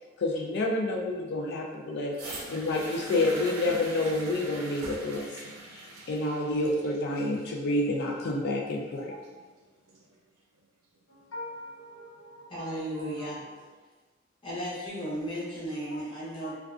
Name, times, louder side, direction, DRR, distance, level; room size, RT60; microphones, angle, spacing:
voice 1, 0.2-5.5 6.1-9.1, left 2 dB, 50° left, 0 dB, 0.3 m, -29 dB
sound 1, 2.1-10.1 10.9-11.0, right 2 dB, 80° right, 0.5 m, -43 dB
voice 2, 11.1-13.7 15.0-15.3 15.9-16.0 16.4-16.5, left 1 dB, 85° left, -6 dB, 0.8 m, -44 dB
voice 3, 12.5-13.4 14.4-16.5, equal, 25° left, -9 dB, 0.8 m, -35 dB
2.4 x 2.2 x 2.4 m, 1.3 s
head